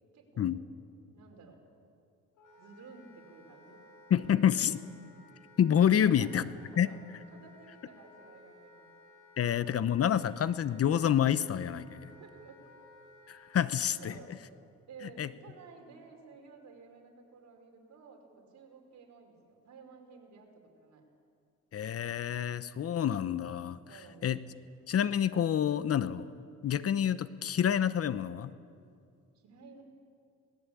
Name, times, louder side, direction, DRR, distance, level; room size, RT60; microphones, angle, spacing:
voice 1, 0.1-0.5 1.1-1.6 2.6-3.8 5.9-6.4 6.7-7.0 7.3-8.9 12.2-12.7 14.0-14.3 14.9-21.0 23.9-24.4 29.3-29.8, right 5 dB, 65° right, 2 dB, 5.0 m, -53 dB
Wind instrument woodwind instrument, 2.3-14.2, left 2 dB, 85° left, 6.4 m, -57 dB
voice 2, 4.1-4.8 5.6-6.4 6.8-6.9 9.4-12.1 13.3-14.1 15.2-15.3 21.7-23.8 24.2-24.4 24.9-28.5, left 9 dB, 50° left, 15 dB, 0.9 m, -28 dB
21.5 x 19.5 x 8.6 m, 2.3 s
cardioid pair, 90°, 30 cm